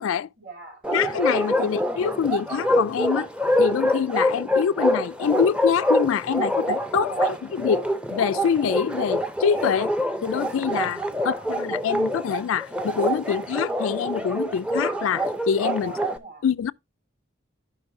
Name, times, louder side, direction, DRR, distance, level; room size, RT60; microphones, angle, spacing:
voice 1, 0.4-0.9 7.0-7.4 11.1-11.5 15.8-16.5, right 3 dB, 45° right, 2.3 m, -42 dB
Bark, 0.8-16.2, equal, 5° right, 0.5 m, -25 dB
voice 2, 0.9-3.3 3.6-7.1 7.5-9.9 10.2-15.9 16.4-16.7, left 7 dB, 80° left, 0.3 m, -25 dB
13.5 x 5.3 x 2.6 m
head